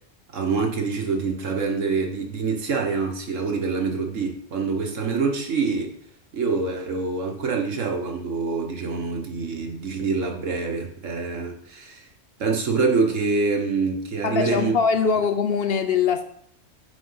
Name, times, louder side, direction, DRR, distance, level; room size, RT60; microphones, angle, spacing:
voice 1, 0.3-5.9 6.3-12.0 12.4-14.7, right 4 dB, 75° right, 1.5 m, -25 dB
voice 2, 14.2-16.2, left 6 dB, 60° left, 0.7 m, -22 dB
7.1 x 4.8 x 5.6 m
omnidirectional pair, 1.3 m